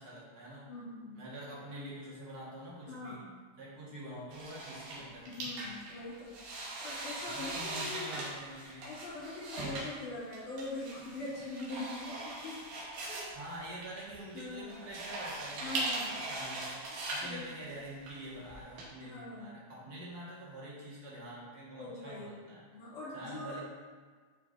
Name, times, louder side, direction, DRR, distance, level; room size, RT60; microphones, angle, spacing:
voice 1, 0.0-0.7 1.1-3.3 3.6-5.7 7.3-8.9 11.3-11.4 13.3-22.6 23.1-23.6, right 1 dB, 40° right, -7 dB, 1.7 m, -46 dB
voice 2, 0.7-1.2 2.9-3.3 5.3-6.3 6.8-8.2 8.8-12.6 13.1-13.3 14.3-14.7 15.6-16.3 17.2-17.4 19.0-19.5 21.8-22.4 22.7-23.6, left 2 dB, 75° left, -9 dB, 3.6 m, -42 dB
Blinds being pulled up and down at various speeds, 4.3-18.8, right 2 dB, 85° right, 2.9 m, -40 dB
9.9 x 4.7 x 2.7 m, 1.5 s
omnidirectional pair, 3.7 m